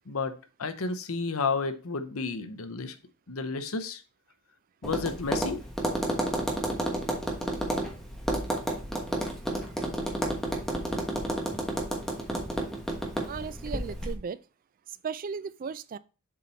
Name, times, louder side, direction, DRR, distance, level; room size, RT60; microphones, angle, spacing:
voice 1, 0.1-2.9 3.3-4.0 4.8-5.6, left 4 dB, 70° left, 0.8 m, -31 dB
Tap, 4.8-14.1, right 1 dB, ahead, 1.2 m, -31 dB
voice 2, 13.3-14.4 15.0-16.0, right 6 dB, 40° right, 0.3 m, -35 dB
7.3 x 4.2 x 4.3 m
head